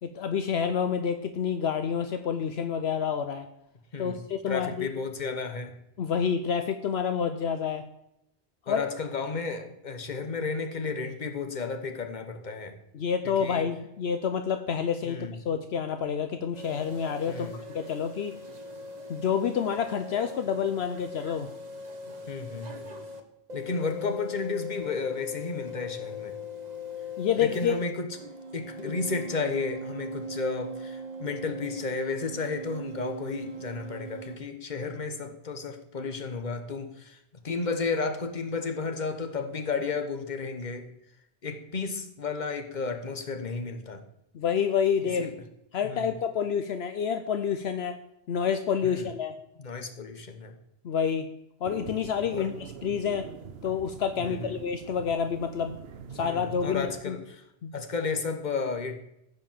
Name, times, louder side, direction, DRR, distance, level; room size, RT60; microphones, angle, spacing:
voice 1, 0.0-3.5 4.0-4.9 6.0-7.9 8.7-8.8 12.9-18.4 19.1-21.5 27.2-27.8 28.8-28.9 44.3-45.2 45.7-48.0 48.3-49.3 50.8-51.3 51.6-53.3 53.6-55.8 56.1-57.2 57.6-57.7, left 7 dB, 75° left, 8 dB, 1.0 m, -28 dB
voice 2, 3.9-5.7 8.7-12.8 13.2-13.7 15.0-15.3 17.3-17.6 22.3-22.9 23.5-26.4 27.4-28.1 28.5-37.2 37.4-40.9 41.4-44.0 45.2-45.3 45.9-46.1 48.8-49.1 49.6-50.5 52.3-52.5 54.2-54.5 56.2-57.4 57.7-59.0, left 4 dB, 45° left, 6 dB, 1.3 m, -33 dB
sound 1, 16.5-23.2 23.5-27.9 28.1-34.4, left 1 dB, 40° right, 1.3 m, -40 dB
sound 2, 51.6-57.0, right 6 dB, 70° right, 1.0 m, -43 dB
15.0 x 5.3 x 7.3 m, 0.81 s
omnidirectional pair, 1.1 m